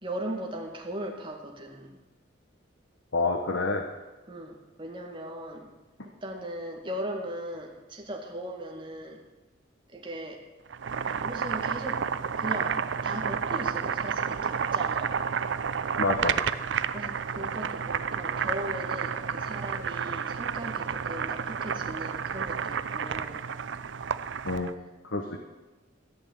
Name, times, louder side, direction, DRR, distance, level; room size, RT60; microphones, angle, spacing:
voice 1, 0.0-2.0 4.3-5.7 6.2-9.2 9.9-10.4 11.2-12.0 12.4-12.8 13.0-15.2 16.9-23.4, right 1 dB, 25° right, 0 dB, 2.0 m, -38 dB
voice 2, 3.1-3.8 16.0-16.4 24.4-24.7 25.0-25.4, left 3 dB, 75° left, 4 dB, 1.2 m, -28 dB
Boiling, 10.7-24.7, right 7 dB, 70° right, 0.5 m, -30 dB
14.0 x 6.3 x 9.1 m, 1.1 s
head